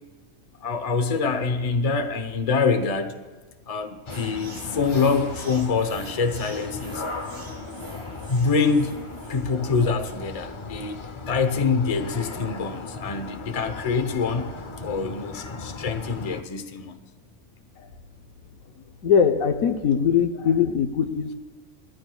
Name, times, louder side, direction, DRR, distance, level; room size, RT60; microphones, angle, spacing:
voice 1, 0.6-3.2 3.7-7.0 8.3-9.0 9.3-11.0 11.3-14.5 14.8-17.0, left 4 dB, 30° left, 7 dB, 0.8 m, -25 dB
sound 1, 4.1-16.4, left 3 dB, 50° left, 0.3 m, -37 dB
sound 2, 4.1-9.6, right 2 dB, 55° right, 1.7 m, -45 dB
voice 2, 19.0-21.3, left 7 dB, 85° left, 6 dB, 1.3 m, -21 dB
21.0 x 14.0 x 2.3 m, 1.3 s
omnidirectional pair, 1.4 m